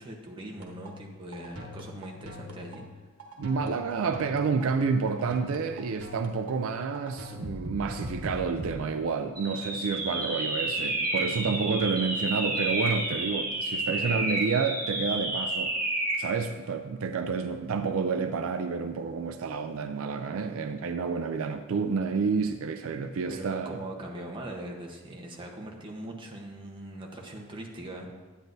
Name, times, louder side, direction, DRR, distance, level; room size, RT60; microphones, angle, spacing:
voice 1, 0.0-2.9 11.5-11.7 13.9-14.3 23.3-28.1, right 1 dB, 20° right, -1 dB, 0.9 m, -41 dB
sound 1, 0.6-8.8, left 1 dB, 85° right, 1.2 m, -42 dB
voice 2, 3.4-15.7 16.2-23.8, right 5 dB, 65° right, 8 dB, 0.4 m, -29 dB
sound 2, 9.4-16.3, right 1 dB, 40° right, 1.5 m, -30 dB
10.0 x 9.0 x 2.6 m, 1.4 s
head